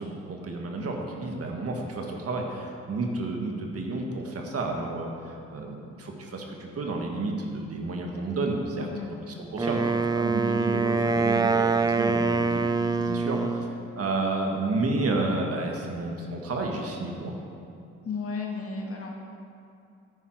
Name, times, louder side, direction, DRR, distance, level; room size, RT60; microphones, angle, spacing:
voice 1, 0.0-8.9 9.4-12.5 13.1-13.4 14.0-17.4, right 2 dB, 50° right, 1 dB, 1.7 m, -31 dB
voice 2, 8.8-9.1 12.8-13.5 18.0-19.1, left 4 dB, 50° left, -1 dB, 1.9 m, -35 dB
Wind instrument woodwind instrument, 9.6-13.7, right 4 dB, 15° right, 0.4 m, -25 dB
10.0 x 9.6 x 4.7 m, 2.5 s
cardioid pair, 90°, 30 cm